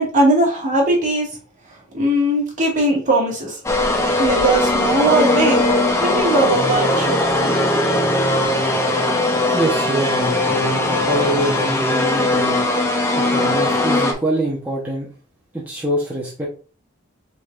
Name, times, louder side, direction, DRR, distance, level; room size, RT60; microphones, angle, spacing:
voice 1, 0.0-1.4 1.7-3.6 4.2-5.6 6.0-8.0, right 1 dB, 40° right, 1.8 m, -19 dB
sound 1, 3.7-14.1, left 2 dB, 15° left, 0.7 m, -19 dB
voice 2, 9.5-12.6 13.2-15.1 15.5-16.5, right 1 dB, 10° right, 1.0 m, -24 dB
6.1 x 3.5 x 2.5 m
head